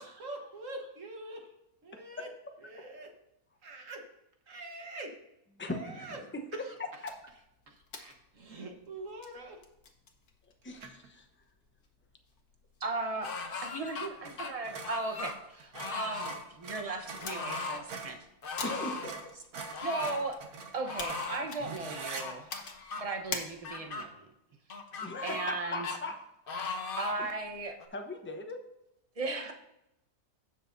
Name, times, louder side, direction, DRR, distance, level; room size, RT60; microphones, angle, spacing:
voice 1, 0.0-1.5 1.8-2.3 2.6-3.1 3.6-4.0 4.5-5.2 5.7-6.2 6.6-6.7 7.7-9.6, right 2 dB, 55° right, 2 dB, 1.6 m, -44 dB
voice 2, 5.6-6.2 6.5-7.1 10.6-11.3 18.6-19.3 25.0-26.2 27.2-27.3 27.9-28.6, left 2 dB, 10° left, 4 dB, 0.7 m, -39 dB
sound 1, 7.0-24.0, left 4 dB, 70° left, 1.7 m, -48 dB
sound 2, 10.8-11.1 14.2-14.4 14.6-18.2 18.6-18.7 19.0-22.3, right 4 dB, 75° right, 1.6 m, -43 dB
voice 3, 12.8-18.2 19.8-20.4 20.7-22.5 23.0-24.3 25.2-25.9 27.0-27.8 29.2-29.5, right 3 dB, 25° right, 4 dB, 0.9 m, -36 dB
sound 3, 13.2-14.1 14.4-15.4 15.7-16.4 17.2-17.8 18.4-19.1 19.7-20.2 20.8-21.5 22.1-23.0 23.6-24.1 24.7-25.6 25.8-26.0 26.5-27.2 27.8-27.9, left 4 dB, 45° left, 0.9 m, -38 dB
16.0 x 6.4 x 2.6 m, 0.86 s
omnidirectional pair, 1.6 m